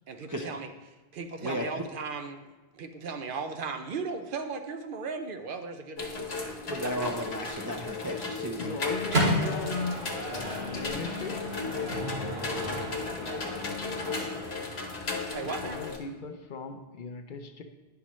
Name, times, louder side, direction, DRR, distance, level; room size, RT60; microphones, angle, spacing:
voice 1, 0.1-0.7 1.1-2.4 2.7-6.6 6.8-7.1 15.3-15.8, right 4 dB, 65° right, 7 dB, 0.7 m, -37 dB
voice 2, 1.4-1.8 6.7-8.8 15.0-15.2, right 1 dB, 30° right, 1 dB, 0.4 m, -34 dB
sound 1, 6.0-16.0, left 4 dB, 85° left, 1.3 m, -35 dB
voice 3, 8.6-11.4 15.4-17.6, left 4 dB, 60° left, 6 dB, 0.7 m, -38 dB
Microwave oven, 8.7-14.7, equal, 85° right, 2.3 m, -33 dB
9.7 x 5.8 x 3.0 m, 1.2 s
omnidirectional pair, 1.0 m